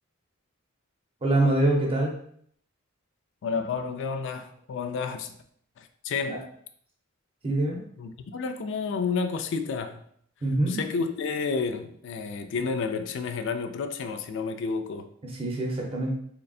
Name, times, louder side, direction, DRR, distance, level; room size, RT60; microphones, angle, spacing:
voice 1, 1.2-2.2 6.3-6.4 7.4-7.8 10.4-10.8 15.2-16.2, right 2 dB, 30° right, 0.7 m, -25 dB
voice 2, 3.4-5.3 5.8-6.5 7.7-10.0 10.7-15.1, left 5 dB, 60° left, 0.4 m, -31 dB
3.8 x 3.2 x 2.4 m
head